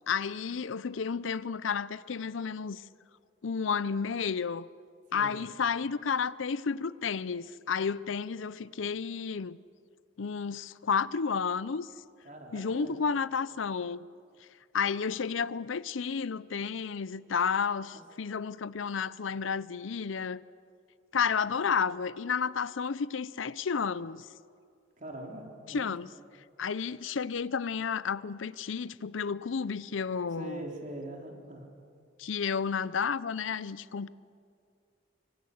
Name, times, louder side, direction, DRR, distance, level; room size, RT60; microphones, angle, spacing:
voice 1, 0.1-2.8 3.4-4.7 5.1-9.6 10.2-11.9 12.5-14.1 14.7-20.4 21.1-24.3 25.7-26.1 26.6-30.6 32.2-34.1, left 6 dB, 75° left, 0.6 m, -31 dB
voice 2, 5.1-5.4 12.2-13.0 17.9-18.0 25.0-25.9 30.3-31.7, right 1 dB, 40° right, 3.7 m, -42 dB
26.0 x 25.0 x 7.9 m
head